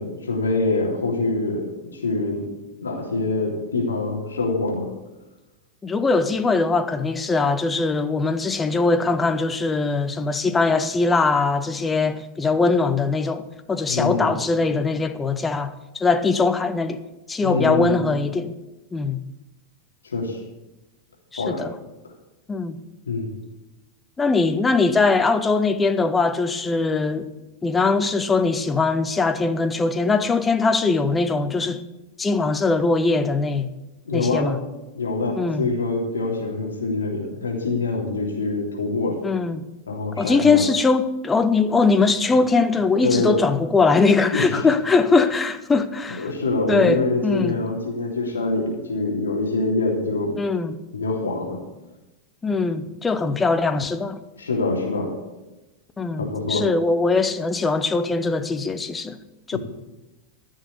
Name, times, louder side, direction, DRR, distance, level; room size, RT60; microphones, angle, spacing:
voice 1, 0.0-2.5 2.8-4.9 13.9-14.3 17.4-17.9 20.0-20.4 21.4-21.7 23.1-23.3 34.1-34.5 34.9-39.2 39.9-40.6 42.3-42.4 43.0-43.3 44.3-44.4 46.2-50.4 50.9-51.6 54.4-55.1 56.2-56.7 59.5-59.6, left 3 dB, 70° left, 3.2 m, -25 dB
voice 2, 5.8-17.0 17.3-18.5 18.9-19.2 21.3-21.7 22.5-22.8 24.2-27.3 27.6-31.8 32.2-33.7 34.1-34.6 35.4-35.7 39.2-39.6 40.2-46.2 46.7-47.6 50.4-50.8 52.4-54.2 56.0-59.2 59.5-59.6, left 3 dB, 15° left, 0.9 m, -21 dB
14.5 x 6.5 x 8.4 m
figure-of-eight pair, 90°, 0 cm